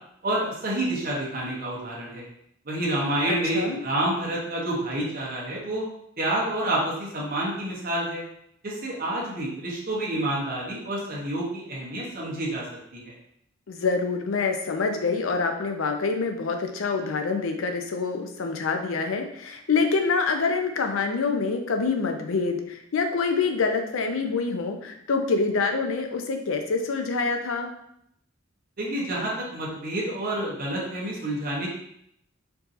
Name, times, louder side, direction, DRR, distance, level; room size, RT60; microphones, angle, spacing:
voice 1, 0.2-2.3 2.7-5.8 6.2-8.2 8.6-12.6 12.9-13.1 28.8-31.7, right 1 dB, 45° right, -4 dB, 1.0 m, -28 dB
voice 2, 3.3-3.8 13.7-27.7, left 4 dB, 75° left, 5 dB, 0.5 m, -26 dB
4.5 x 2.7 x 2.6 m, 0.74 s
head